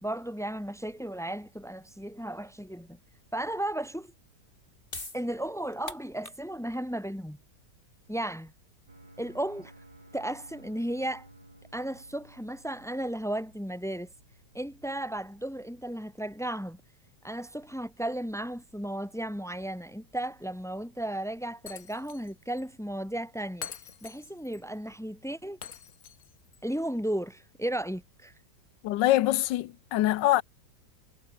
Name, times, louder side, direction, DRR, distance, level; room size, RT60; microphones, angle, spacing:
voice 1, 0.0-3.0 3.3-4.1 5.1-7.4 8.1-8.5 9.2-9.7 10.1-11.3 11.7-14.1 14.5-16.8 17.2-23.7 24.0-25.6 26.6-28.3, right 1 dB, 5° left, 0.3 m, -34 dB
sound 1, 4.9-11.2, left 2 dB, 30° left, 4.2 m, -47 dB
sound 2, 8.9-14.9, right 2 dB, 85° right, 8.7 m, -56 dB
Shatter, 21.7-22.3 22.6-22.7 23.6-24.6 25.6-26.6, left 9 dB, 60° left, 1.5 m, -44 dB
voice 2, 28.8-30.4, left 15 dB, 85° left, 1.4 m, -24 dB
omnidirectional pair, 1.9 m